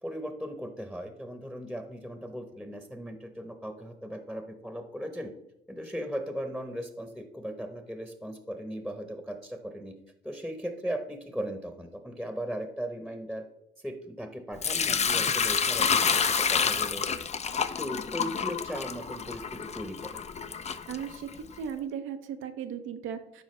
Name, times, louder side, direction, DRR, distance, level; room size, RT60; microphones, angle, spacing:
voice 1, 0.0-5.3 5.7-10.0 10.2-13.4 13.8-17.0 17.8-20.2, equal, ahead, 7 dB, 0.9 m, -37 dB
Sink (filling or washing) / Liquid, 14.6-21.5, left 6 dB, 35° left, 0.5 m, -28 dB
voice 2, 20.9-23.4, right 8 dB, 85° right, 6 dB, 0.7 m, -37 dB
12.0 x 4.6 x 3.2 m, 0.84 s
cardioid pair, 90°, 20 cm